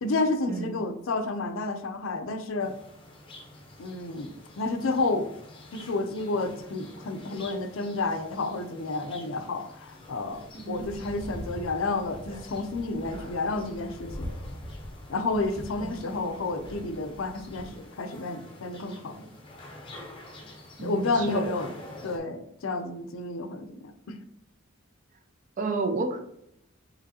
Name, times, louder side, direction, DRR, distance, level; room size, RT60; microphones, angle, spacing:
voice 1, 0.0-2.8 3.8-5.3 5.7-14.3 15.1-19.3 20.8-21.7 22.0-24.2, left 3 dB, 75° left, 8 dB, 0.5 m, -30 dB
sound 1, 2.6-22.2, left 1 dB, 25° left, 0.7 m, -44 dB
voice 2, 20.8-21.5 25.6-26.2, right 3 dB, 40° right, 6 dB, 0.4 m, -31 dB
5.0 x 3.1 x 2.7 m, 0.76 s
head